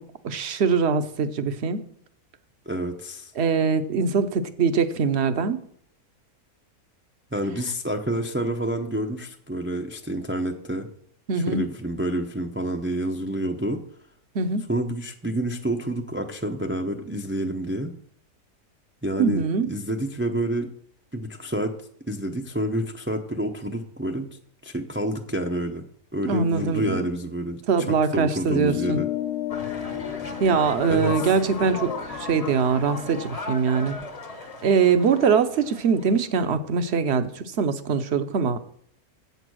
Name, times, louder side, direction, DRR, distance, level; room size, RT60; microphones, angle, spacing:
voice 1, 0.2-1.8 3.4-5.6 11.3-11.7 14.3-14.7 19.2-19.7 26.2-27.1 27.7-29.0 30.4-33.9 34.6-38.6, right 5 dB, 55° right, 10 dB, 0.9 m, -22 dB
voice 2, 2.7-3.3 7.3-10.9 11.3-13.8 14.7-17.9 19.0-20.7 21.1-21.7 22.1-24.3 24.6-25.8 26.1-27.6 27.9-29.1 30.9-31.3, right 1 dB, 15° right, 3 dB, 0.4 m, -28 dB
sound 1, 28.4-33.2, left 14 dB, 80° left, 1.3 m, -33 dB
sound 2, 29.5-36.3, left 3 dB, 30° left, 0.8 m, -36 dB
8.1 x 6.8 x 6.2 m, 0.64 s
omnidirectional pair, 1.6 m